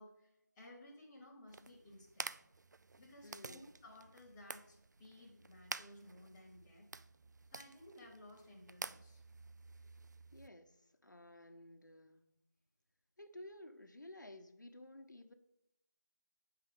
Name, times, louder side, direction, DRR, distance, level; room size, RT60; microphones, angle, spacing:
voice 1, 0.0-2.3 3.0-6.9 7.5-9.2, left 1 dB, 5° left, -8 dB, 0.5 m, -57 dB
sound 1, 1.5-10.5, right 3 dB, 70° right, 0.4 m, -50 dB
voice 2, 3.2-3.6 10.3-12.2 13.2-15.3, left 1 dB, 90° left, 6 dB, 1.1 m, -54 dB
8.9 x 5.7 x 3.7 m, 0.82 s
figure-of-eight pair, 170°, 10 cm